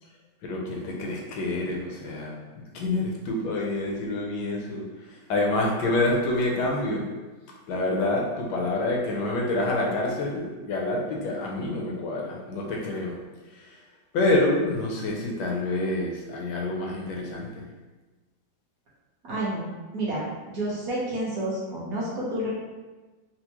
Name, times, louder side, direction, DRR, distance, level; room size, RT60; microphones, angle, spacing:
voice 1, 0.4-7.1 7.7-13.2 13.5-13.8 14.1-17.7, left 2 dB, 70° left, -1 dB, 1.2 m, -27 dB
voice 2, 19.3-19.7 19.9-22.5, right 1 dB, 55° right, -7 dB, 1.2 m, -30 dB
4.3 x 2.0 x 2.8 m, 1.2 s
omnidirectional pair, 2.1 m